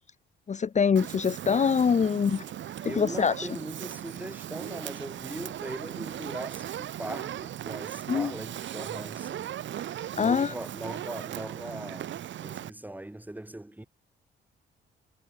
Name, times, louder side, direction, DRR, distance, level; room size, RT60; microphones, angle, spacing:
voice 1, 0.5-2.4 2.8-3.5 8.1-8.3 10.2-10.5, left 6 dB, 35° left, 1.1 m, -24 dB
Fire, 1.0-12.7, right 11 dB, 70° right, 3.8 m, -38 dB
voice 2, 2.8-9.5 10.1-13.9, right 1 dB, 10° right, 4.5 m, -40 dB
cardioid pair, 90°, 20 cm